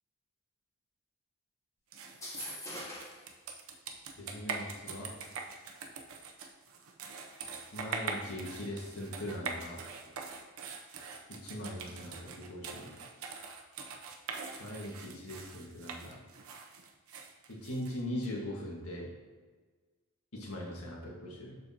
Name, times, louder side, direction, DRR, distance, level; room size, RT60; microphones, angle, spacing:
sound 1, 1.9-18.3, right 5 dB, 70° right, 0.7 m, -43 dB
sound 2, 2.1-3.3, left 1 dB, 15° left, 1.2 m, -42 dB
voice 1, 4.2-5.1 7.7-9.8 11.3-13.0 14.6-16.2 17.5-19.1 20.3-21.6, left 1 dB, 75° left, -2 dB, 1.7 m, -40 dB
6.9 x 6.3 x 2.9 m, 1.4 s
head